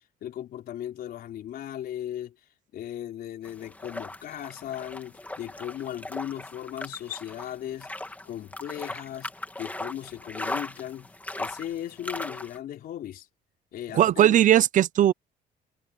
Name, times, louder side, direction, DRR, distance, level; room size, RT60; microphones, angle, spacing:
voice 1, 0.2-2.3 2.7-7.9 8.2-13.3 13.7-14.4, left 11 dB, 65° left, 4.3 m, -37 dB
sound 1, 3.4-12.6, left 1 dB, 10° left, 2.5 m, -38 dB
voice 2, 13.9-15.1, right 11 dB, 50° right, 0.5 m, -19 dB
cardioid pair, 110°, 17 cm